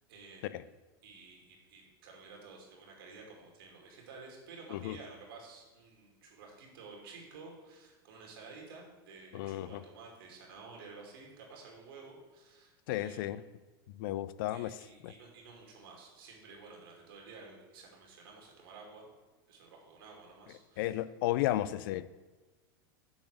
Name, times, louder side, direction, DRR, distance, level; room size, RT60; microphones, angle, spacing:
voice 1, 0.1-0.6 1.0-13.4 14.5-19.1 19.5-21.0 21.5-21.6, right 4 dB, 75° right, 2.5 m, -52 dB
voice 2, 9.3-9.8 12.9-13.4 14.0-14.7 15.0-15.1 20.8-22.1, left 14 dB, 65° left, 0.4 m, -33 dB
7.0 x 4.1 x 6.3 m
hypercardioid pair, 115°, 12 cm